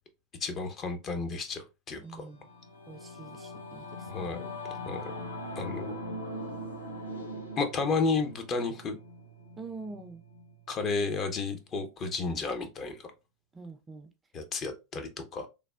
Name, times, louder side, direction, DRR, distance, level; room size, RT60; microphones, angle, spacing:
voice 1, 0.4-2.3 4.1-4.4 4.8-5.1 5.6-6.0 7.6-9.0 10.7-13.1 14.3-15.5, left 4 dB, 35° left, 0.6 m, -32 dB
voice 2, 2.0-2.5 2.9-4.3 9.6-10.2 13.5-14.1, right 3 dB, 20° right, 0.4 m, -45 dB
Singing / Musical instrument, 2.1-11.8, left 1 dB, 90° left, 0.5 m, -42 dB
3.3 x 2.1 x 2.3 m
figure-of-eight pair, 85°, 0 cm